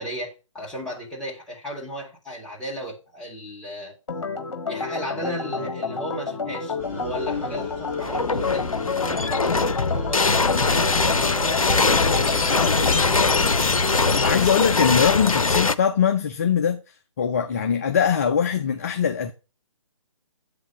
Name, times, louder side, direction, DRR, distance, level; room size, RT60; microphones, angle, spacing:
voice 1, 0.0-4.0 4.7-13.0, equal, 5° left, 1.8 m, -35 dB
Organ, 4.1-13.4, left 4 dB, 55° left, 1.4 m, -30 dB
sound 1, 6.8-14.0, right 2 dB, 15° right, 2.1 m, -39 dB
sound 2, 8.0-15.8, left 4 dB, 80° left, 0.5 m, -21 dB
voice 2, 14.2-19.3, left 7 dB, 30° left, 0.5 m, -22 dB
8.2 x 3.5 x 5.6 m
figure-of-eight pair, 140°, 17 cm